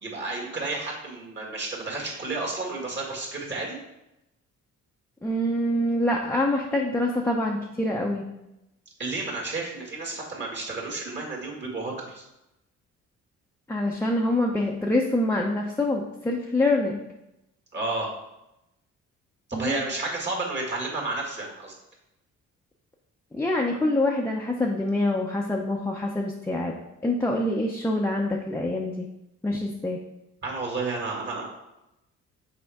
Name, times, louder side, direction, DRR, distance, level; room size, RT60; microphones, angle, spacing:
voice 1, 0.0-3.8 9.0-12.2 17.7-18.1 19.5-21.7 30.4-31.4, right 3 dB, 35° right, -2 dB, 2.0 m, -31 dB
voice 2, 5.2-8.3 13.7-17.0 19.5-19.8 23.3-26.8 27.0-29.1 29.4-30.0, left 1 dB, 10° left, -1 dB, 0.6 m, -25 dB
6.1 x 4.3 x 3.6 m, 0.91 s
cardioid pair, 90°, 30 cm